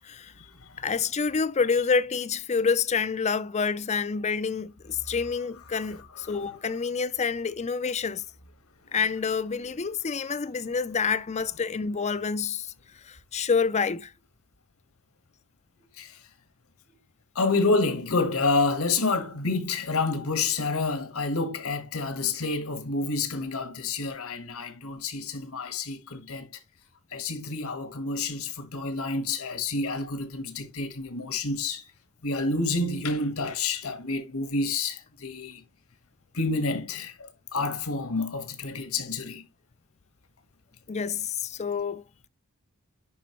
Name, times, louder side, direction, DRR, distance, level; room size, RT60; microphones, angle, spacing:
voice 1, 0.8-8.2 8.9-12.7 13.1-14.1 40.9-42.3, left 5 dB, 30° left, 0.5 m, -28 dB
voice 2, 17.3-26.5 27.1-31.8 32.2-35.6 36.3-39.4, left 3 dB, 75° left, 1.6 m, -28 dB
11.0 x 4.3 x 3.1 m
head